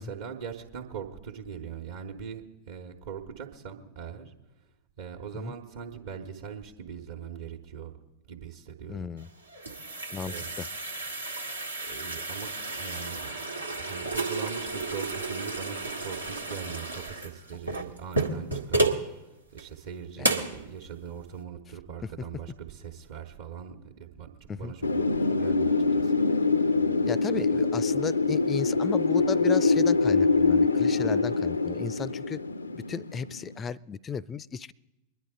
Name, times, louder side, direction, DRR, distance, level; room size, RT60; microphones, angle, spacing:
voice 1, 0.0-4.3 5.0-7.9 8.3-9.1 10.2-10.5 11.8-13.3 13.7-18.9 19.5-24.3 24.5-26.1, right 7 dB, 55° right, 1 dB, 1.2 m, -41 dB
voice 2, 8.9-9.3 10.1-10.7 20.2-20.3 24.5-24.7 27.0-32.4 32.7-34.7, left 6 dB, 20° left, 22 dB, 0.4 m, -35 dB
sound 1, 9.2-19.1 19.6-19.7 20.2-20.6, right 2 dB, 85° right, 1.4 m, -32 dB
Wind, 24.8-33.5, left 3 dB, 80° left, 0.5 m, -24 dB
23.0 x 10.5 x 3.7 m, 0.98 s
figure-of-eight pair, 90°, 0 cm